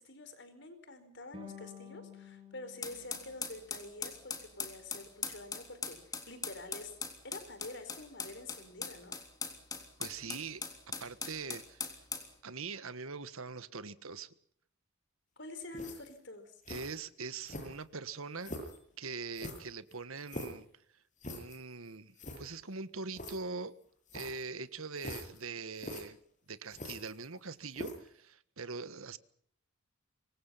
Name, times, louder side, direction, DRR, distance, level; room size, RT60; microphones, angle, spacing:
voice 1, 0.0-7.0 7.2-9.2 15.4-16.6, left 2 dB, 55° left, 4.7 m, -47 dB
sound 1, 1.3-4.4, left 6 dB, 25° right, 5.6 m, -52 dB
sound 2, 2.8-12.3, left 5 dB, 15° left, 3.3 m, -41 dB
voice 2, 10.0-10.6 11.0-11.9 12.4-14.3 16.7-18.5 19.0-20.7 21.3-23.7 24.1-26.2 26.5-29.2, right 4 dB, 75° right, 1.6 m, -42 dB
sound 3, 15.7-16.2 16.6-17.0 17.4-17.9 18.4-18.8 19.3-20.6 21.2-21.6 21.9-22.0 22.2-22.4 23.1-23.4 24.1-24.5 25.0-25.4 25.8-26.0 26.7-27.4 27.7-28.1, left 1 dB, 35° left, 7.9 m, -43 dB
26.0 x 24.0 x 5.8 m
head